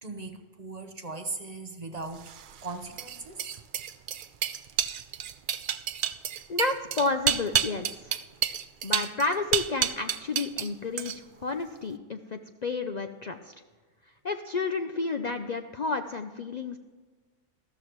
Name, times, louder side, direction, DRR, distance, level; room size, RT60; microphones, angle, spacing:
voice 1, 0.0-3.4, right 3 dB, 35° right, 6 dB, 0.9 m, -39 dB
sound 1, 2.2-10.7 11.0-11.4, right 9 dB, 70° right, 0.4 m, -30 dB
voice 2, 6.5-8.1 8.8-11.1 11.4-13.5 14.2-16.8, left 3 dB, 60° left, 6 dB, 0.4 m, -31 dB
14.0 x 13.0 x 3.1 m, 1.4 s
omnidirectional pair, 1.4 m